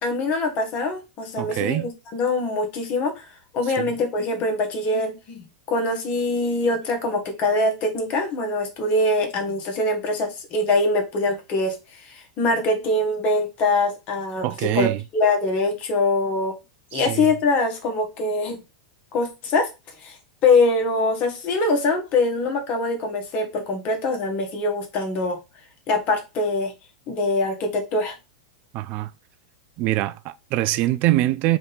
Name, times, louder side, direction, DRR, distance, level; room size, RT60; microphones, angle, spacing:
voice 1, 0.0-14.5 14.7-16.5 16.9-18.6 19.1-19.7 20.0-20.2 20.4-25.4 25.9-26.7 27.1-28.1, left 2 dB, 35° left, 1.2 m, -23 dB
voice 2, 1.4-1.9 3.8-3.9 14.4-15.0 16.9-17.3 28.7-29.1 29.8-31.6, right 16 dB, 45° right, 0.3 m, -23 dB
3.6 x 2.6 x 3.9 m
hypercardioid pair, 125°, 4 cm